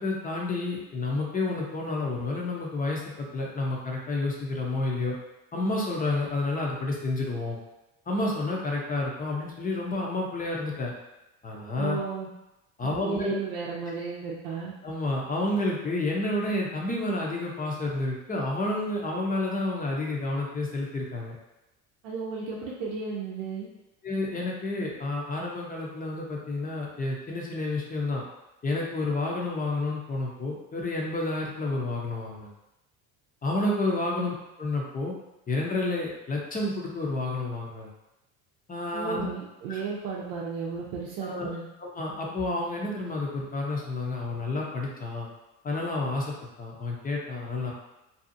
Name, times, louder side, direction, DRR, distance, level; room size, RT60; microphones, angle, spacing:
voice 1, 0.0-5.2 5.5-7.6 8.1-10.9 11.4-12.0 12.8-13.4 14.8-21.3 24.0-28.2 28.6-32.5 33.4-35.1 35.5-37.9 38.7-39.3 39.7-39.8 41.2-41.5 41.8-45.3 45.6-47.7, left 2 dB, 20° left, -2 dB, 0.6 m, -30 dB
voice 2, 11.8-12.3 12.8-14.7 22.0-23.7 34.2-34.3 38.9-41.7, right 5 dB, 75° right, -5 dB, 0.6 m, -34 dB
2.7 x 2.4 x 2.7 m, 0.94 s
supercardioid pair, 90°, 41 cm